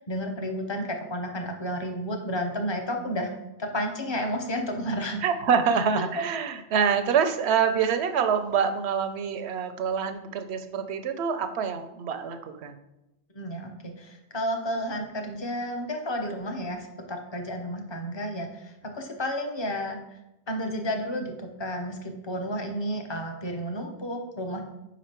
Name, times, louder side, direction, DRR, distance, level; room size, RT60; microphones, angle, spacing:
voice 1, 0.0-3.3 3.6-5.2 13.3-20.2 20.5-24.6, equal, 25° left, 4 dB, 0.7 m, -32 dB
voice 2, 5.2-12.8, right 7 dB, 70° right, 8 dB, 0.8 m, -26 dB
5.2 x 5.1 x 4.3 m, 0.94 s
omnidirectional pair, 1.2 m